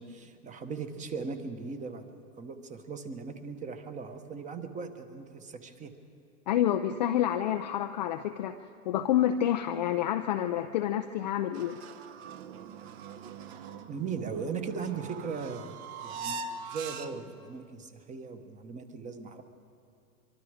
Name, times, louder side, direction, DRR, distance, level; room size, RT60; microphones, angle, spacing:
voice 1, 0.0-2.1 2.4-5.9 13.9-19.4, right 5 dB, 15° right, 8 dB, 1.1 m, -38 dB
voice 2, 6.5-8.6 8.9-11.8, left 11 dB, 30° left, 6 dB, 0.4 m, -28 dB
sound 1, 11.5-17.4, right 5 dB, 45° right, 1.1 m, -42 dB
23.5 x 23.5 x 4.9 m, 2.6 s
hypercardioid pair, 135°, 46 cm